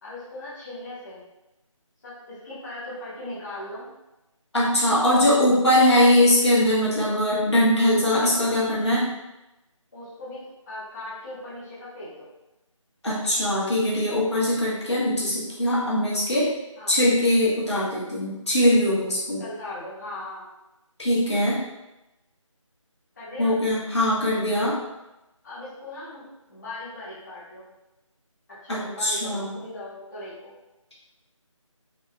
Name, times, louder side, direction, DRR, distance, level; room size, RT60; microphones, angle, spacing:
voice 1, 0.0-1.2 2.0-3.9 8.0-8.6 9.9-12.3 16.8-16.9 19.4-20.4 23.1-23.5 25.4-27.7 28.6-30.5, left 1 dB, 35° left, -12 dB, 1.0 m, -38 dB
voice 2, 4.5-9.0 13.0-16.5 16.9-19.4 21.0-21.6 23.4-24.8 28.7-29.5, left 1 dB, 55° left, -7 dB, 1.2 m, -21 dB
3.8 x 2.6 x 2.2 m, 0.96 s
figure-of-eight pair, 160°, 17 cm